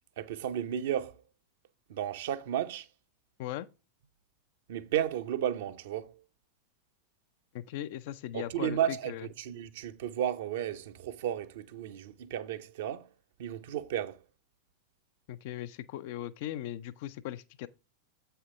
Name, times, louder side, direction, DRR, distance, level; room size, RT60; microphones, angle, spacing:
voice 1, 0.2-1.2 1.9-2.9 4.7-6.2 8.3-13.1 13.4-14.2, right 10 dB, 55° right, 0.7 m, -33 dB
voice 2, 7.5-9.3 15.3-17.7, left 13 dB, 50° left, 0.4 m, -39 dB
7.9 x 5.6 x 3.7 m
figure-of-eight pair, 90°, 0 cm